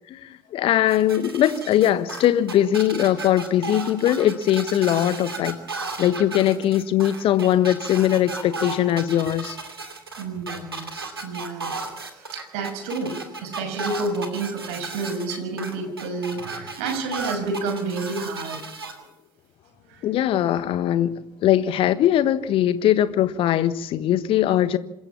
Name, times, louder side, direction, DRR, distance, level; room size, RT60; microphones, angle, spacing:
voice 1, 0.1-5.6 6.0-9.6 20.0-24.8, left 11 dB, 45° left, 1.4 m, -21 dB
sound 1, 0.9-18.9, right 4 dB, 80° right, 2.7 m, -34 dB
voice 2, 10.2-10.9 11.2-11.7 12.1-13.2 13.4-18.6 19.9-20.1, right 3 dB, 60° right, 6.1 m, -29 dB
27.0 x 15.0 x 7.2 m
figure-of-eight pair, 60°, 12 cm